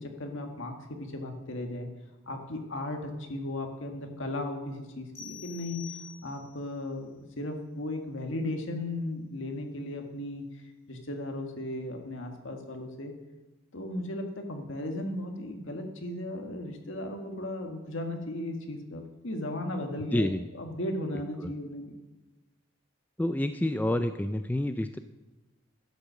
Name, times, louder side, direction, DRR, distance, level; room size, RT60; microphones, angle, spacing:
voice 1, 0.0-1.9 2.2-5.9 6.2-10.4 10.9-13.1 13.7-22.0, left 1 dB, 65° left, 4 dB, 1.8 m, -36 dB
sound 1, 5.1-6.7, left 8 dB, 85° left, 5.1 m, -46 dB
voice 2, 20.1-20.4 21.4-21.5 23.2-25.0, left 1 dB, 10° left, 8 dB, 0.3 m, -28 dB
12.0 x 8.3 x 6.4 m, 1.1 s
head